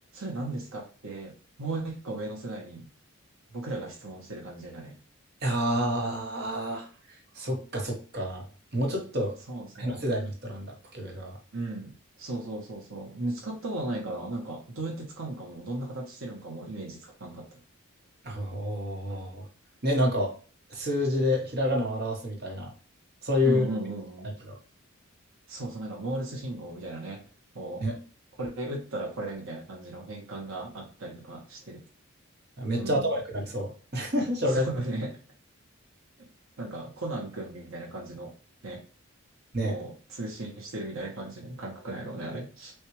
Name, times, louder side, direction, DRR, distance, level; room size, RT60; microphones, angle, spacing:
voice 1, 0.1-2.9 3.5-5.0 9.5-10.1 11.5-11.9 12.2-17.6 23.4-24.3 25.5-27.2 27.5-27.9 28.4-31.8 32.8-33.2 34.5-35.2 36.6-38.3 38.6-38.8 39.6-42.7, right 2 dB, 75° right, 0 dB, 1.0 m, -36 dB
voice 2, 5.4-6.8 7.4-8.4 8.7-9.4 9.8-11.3 18.2-19.4 19.8-20.4 20.7-22.7 23.2-23.6 24.5-24.6 27.8-28.0 32.6-34.7 39.5-39.7, left 1 dB, 50° right, 0 dB, 1.1 m, -28 dB
6.3 x 2.4 x 3.1 m, 0.37 s
head